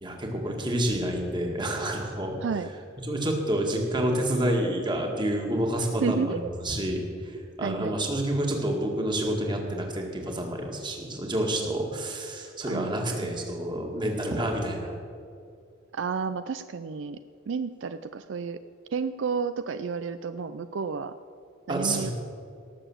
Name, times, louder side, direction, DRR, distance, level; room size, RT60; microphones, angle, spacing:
voice 1, 0.0-2.4 3.0-6.3 6.6-14.9 21.7-22.1, right 1 dB, 25° right, 1 dB, 2.0 m, -28 dB
voice 2, 6.0-6.5 7.6-8.0 12.7-13.3 15.9-17.2 17.5-18.6 18.9-21.1 21.7-22.1, right 5 dB, 70° right, 11 dB, 0.4 m, -31 dB
18.0 x 7.0 x 7.3 m, 2.4 s
head